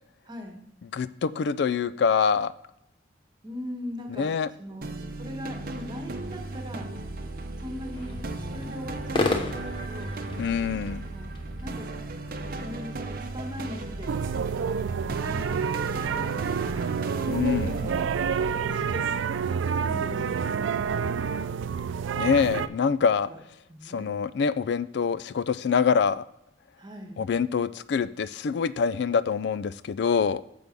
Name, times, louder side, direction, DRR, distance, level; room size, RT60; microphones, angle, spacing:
voice 1, 0.2-0.6 3.4-4.3 4.6-4.9 5.2-6.9 7.6-8.1 8.5-10.2 10.7-11.3 11.6-14.1 15.0-16.9 17.5-21.5 23.0-23.4 23.7-24.1 26.8-27.2, left 1 dB, 25° right, 3 dB, 1.3 m, -40 dB
voice 2, 0.9-2.5 4.2-4.5 10.4-11.0 17.3-17.7 22.2-23.3 23.9-26.2 27.2-30.4, left 6 dB, 60° left, 17 dB, 0.3 m, -25 dB
sound 1, 4.8-18.5, right 2 dB, 50° right, 0.7 m, -36 dB
sound 2, 8.0-12.8, left 2 dB, 25° left, 0.9 m, -33 dB
sound 3, 14.1-22.7, right 6 dB, 85° right, 0.4 m, -28 dB
6.9 x 6.1 x 5.1 m, 0.86 s
head